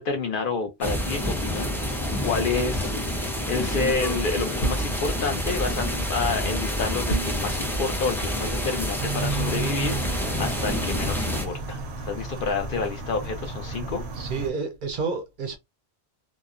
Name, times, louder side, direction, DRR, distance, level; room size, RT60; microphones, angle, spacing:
voice 1, 0.0-1.7 2.2-11.8 12.0-14.0, left 4 dB, 60° left, 0.7 m, -29 dB
sound 1, 0.8-11.5, equal, 5° left, 0.4 m, -28 dB
sound 2, 4.6-5.0 7.1-7.4, right 3 dB, 85° left, 1.2 m, -27 dB
sound 3, 9.0-14.5, right 4 dB, 85° right, 0.9 m, -33 dB
voice 2, 14.2-15.6, right 4 dB, 60° right, 0.6 m, -30 dB
2.8 x 2.0 x 2.4 m
omnidirectional pair, 1.1 m